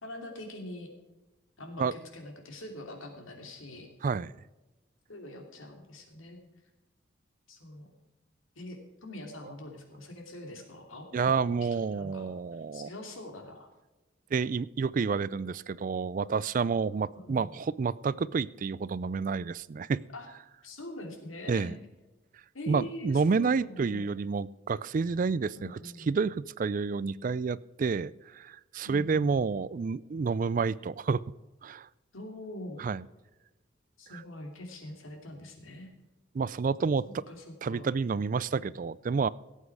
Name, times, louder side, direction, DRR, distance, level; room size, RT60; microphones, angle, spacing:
voice 1, 0.0-0.9 1.6-3.9 5.1-6.4 7.5-8.0 8.5-11.6 11.9-13.7 17.1-17.5 20.1-20.3 20.6-21.7 22.5-24.1 25.5-26.2 28.8-29.4 32.1-32.8 34.0-35.9 37.0-37.9, left 1 dB, 90° left, 3 dB, 2.8 m, -44 dB
voice 2, 4.0-4.3 11.1-12.9 14.3-20.0 21.5-21.7 22.7-25.8 26.1-31.2 31.6-31.9 32.8-33.0 36.3-37.0 37.6-39.3, right 5 dB, 40° right, 20 dB, 0.3 m, -29 dB
17.0 x 8.3 x 4.8 m, 1.1 s
head